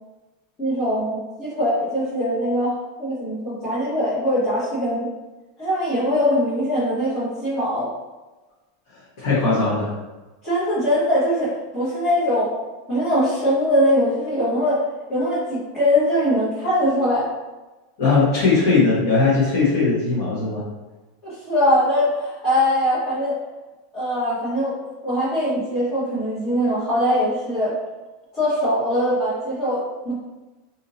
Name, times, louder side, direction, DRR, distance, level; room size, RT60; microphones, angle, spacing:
voice 1, 0.6-5.1 5.6-7.9 10.4-12.5 12.9-14.8 15.1-17.3 21.2-23.3 23.9-24.8 25.0-27.8 28.3-30.1, equal, 20° left, -12 dB, 1.1 m, -22 dB
voice 2, 9.2-9.9 18.0-20.6, left 4 dB, 50° left, -10 dB, 1.1 m, -19 dB
2.7 x 2.6 x 4.0 m, 1.2 s
supercardioid pair, 180°, 0 cm